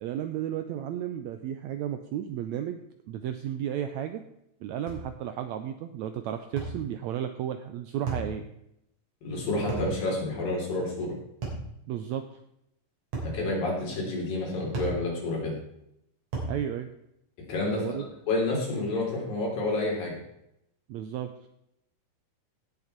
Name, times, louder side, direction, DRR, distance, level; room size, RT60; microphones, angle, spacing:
voice 1, 0.0-2.8 3.1-4.2 4.6-8.4 11.9-12.2 16.5-16.9 17.7-18.0 20.9-21.3, right 10 dB, 80° right, 8 dB, 1.6 m, -33 dB
sound 1, 4.9-5.1 6.6-6.8 8.1-8.3 9.7-9.9 11.4-11.7 13.1-13.4 14.7-15.0 16.3-16.6, right 3 dB, 55° right, 4.8 m, -33 dB
voice 2, 9.2-11.2 13.2-15.6 17.5-20.2, left 2 dB, 85° left, -3 dB, 5.4 m, -29 dB
17.0 x 6.9 x 4.5 m, 0.79 s
omnidirectional pair, 3.9 m